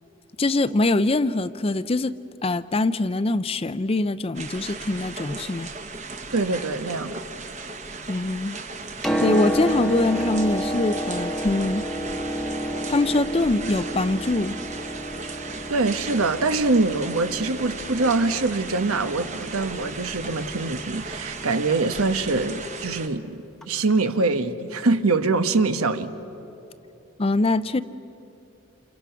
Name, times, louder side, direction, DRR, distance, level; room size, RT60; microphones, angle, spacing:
voice 1, 0.4-2.1 2.4-5.7 8.1-8.6 9.2-11.9 12.9-14.6 27.2-27.8, left 2 dB, 25° left, 0.5 m, -23 dB
sound 1, 4.3-23.1, right 3 dB, 35° right, 1.1 m, -36 dB
voice 2, 6.3-7.2 15.7-26.1, right 3 dB, 90° right, 1.1 m, -24 dB
Piano, 8.8-22.5 23.6-23.7, equal, ahead, 1.1 m, -31 dB
29.0 x 28.5 x 5.8 m
head